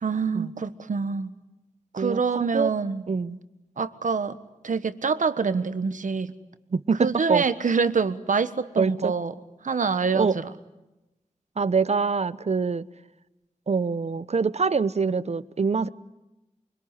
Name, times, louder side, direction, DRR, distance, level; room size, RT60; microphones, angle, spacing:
voice 1, 0.0-1.3 1.9-3.0 3.8-4.4 4.6-6.3 7.0-9.3 9.6-10.3, right 5 dB, 80° right, 1.4 m, -25 dB
voice 2, 2.0-2.7 3.1-3.4 6.7-7.5 8.8-9.1 10.1-10.4 11.6-12.8 13.7-15.9, right 5 dB, 55° right, 0.9 m, -25 dB
25.0 x 23.5 x 9.9 m
wide cardioid pair, 60°, 13 cm